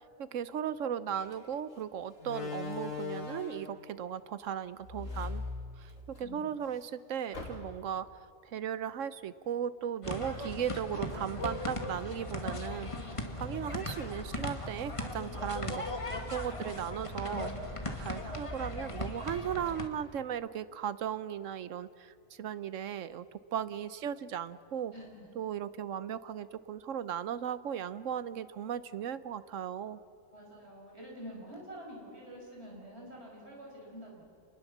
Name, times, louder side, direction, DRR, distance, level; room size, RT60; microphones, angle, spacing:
voice 1, 0.2-5.4 5.8-8.1 8.4-15.8 16.3-17.5 17.8-24.9 25.4-30.0, right 9 dB, 70° right, 15 dB, 1.1 m, -37 dB
Slam, 1.1-1.3 2.2-3.8 4.8-6.2 6.6-6.7 7.3-8.0, left 4 dB, 70° left, 3.2 m, -39 dB
voice 2, 6.2-6.5 13.5-13.7 14.2-14.4 15.8-15.9 18.2-18.4 24.9-25.3 30.3-34.2, equal, 50° right, -2 dB, 6.6 m, -48 dB
sound 1, 10.0-19.9, left 1 dB, 25° left, 1.9 m, -38 dB
28.0 x 20.5 x 7.3 m, 2.4 s
omnidirectional pair, 1.4 m